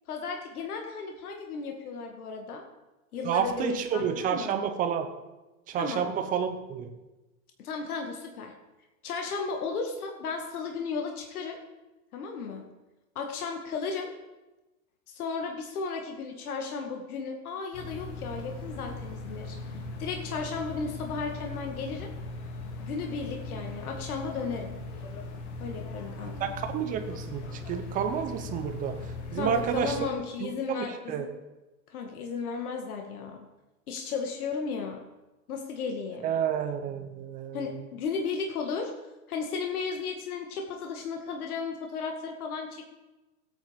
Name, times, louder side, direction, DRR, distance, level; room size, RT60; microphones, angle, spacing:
voice 1, 0.1-2.6 3.1-4.5 5.8-6.0 7.6-8.5 9.0-11.6 12.1-12.6 13.2-14.1 15.1-19.6 20.0-22.1 22.8-24.7 25.6-26.6 29.3-31.3 31.9-33.5 33.9-35.0 35.5-36.3 37.5-38.9 39.3-42.8, left 5 dB, 80° left, 3 dB, 2.1 m, -34 dB
voice 2, 3.2-5.1 5.7-6.9 26.4-29.0 29.3-30.0 30.4-31.3 36.2-37.8, right 8 dB, 20° right, 6 dB, 0.8 m, -30 dB
sound 1, 17.7-30.1, left 2 dB, 50° left, 2.3 m, -39 dB
16.5 x 9.0 x 5.2 m, 1.1 s
supercardioid pair, 160°, 43 cm